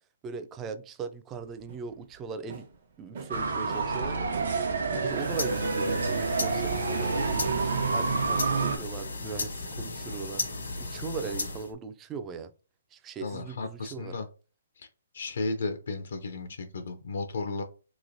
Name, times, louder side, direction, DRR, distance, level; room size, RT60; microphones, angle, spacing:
voice 1, 0.2-2.7 3.0-4.3 5.0-7.5 7.9-10.4 10.8-12.5 12.9-14.1, right 5 dB, 20° right, 0.3 m, -39 dB
sound 1, 1.3-4.1 4.3-6.0 6.8-8.7 9.0-9.5, right 5 dB, 50° right, 0.8 m, -44 dB
sound 2, 3.3-8.8, right 4 dB, 75° right, 0.7 m, -28 dB
sound 3, 5.0-11.7, left 3 dB, 85° left, 1.2 m, -35 dB
voice 2, 13.2-14.3 14.8-14.9 15.1-17.6, left 3 dB, 70° left, 0.5 m, -34 dB
3.1 x 3.0 x 2.6 m
hypercardioid pair, 150°, 0 cm